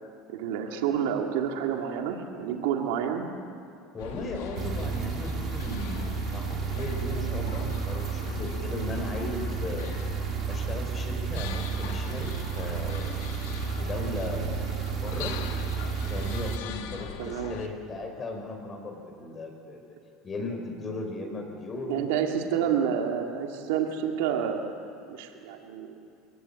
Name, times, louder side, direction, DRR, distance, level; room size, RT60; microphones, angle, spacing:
voice 1, 0.3-3.2 17.2-17.5 21.9-24.7 25.1-26.0, right 8 dB, 75° right, 3 dB, 2.2 m, -29 dB
voice 2, 3.9-9.9 10.5-13.2 13.8-14.6 15.0-15.4 16.1-19.8 20.2-22.0 22.6-22.8, left 2 dB, 30° left, 2 dB, 5.2 m, -37 dB
sound 1, 4.0-17.7, left 8 dB, 80° left, 1.9 m, -39 dB
sound 2, 4.5-16.6, right 8 dB, 45° right, 1.7 m, -32 dB
23.0 x 19.5 x 8.7 m, 2.5 s
hypercardioid pair, 90°, 0 cm